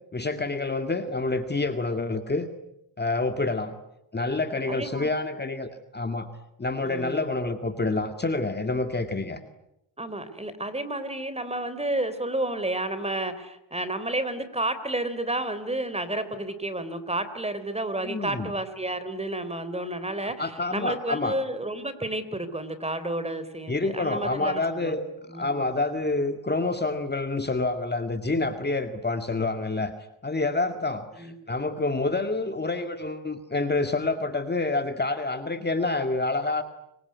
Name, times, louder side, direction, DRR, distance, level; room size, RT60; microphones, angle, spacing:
voice 1, 0.1-2.5 3.0-3.7 4.1-6.3 6.6-9.4 18.0-18.5 20.4-21.4 23.7-25.0 25.3-29.9 30.2-36.6, left 3 dB, 20° left, 7 dB, 2.0 m, -27 dB
voice 2, 4.7-5.1 6.8-7.1 9.2-9.4 10.0-25.0 25.3-25.7 31.1-31.3, right 1 dB, 15° right, 12 dB, 3.5 m, -31 dB
26.5 x 23.5 x 9.5 m, 0.83 s
cardioid pair, 100°, 45 cm